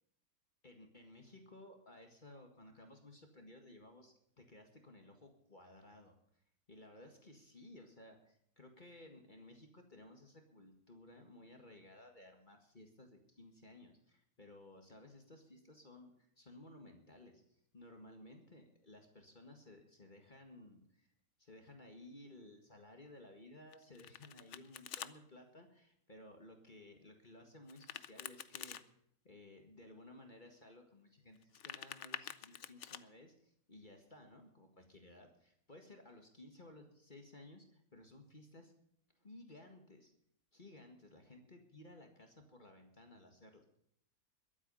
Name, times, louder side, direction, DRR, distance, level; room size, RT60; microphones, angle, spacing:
voice 1, 0.6-6.1 6.7-21.1 21.4-28.8 29.2-38.7 39.2-40.1 40.5-43.6, left 1 dB, 35° left, 3 dB, 1.9 m, -57 dB
Domestic sounds home sounds, 23.7-25.1 27.7-28.8 31.4-33.0, left 10 dB, 60° left, 0.9 m, -48 dB
22.0 x 8.5 x 5.5 m, 0.69 s
omnidirectional pair, 1.6 m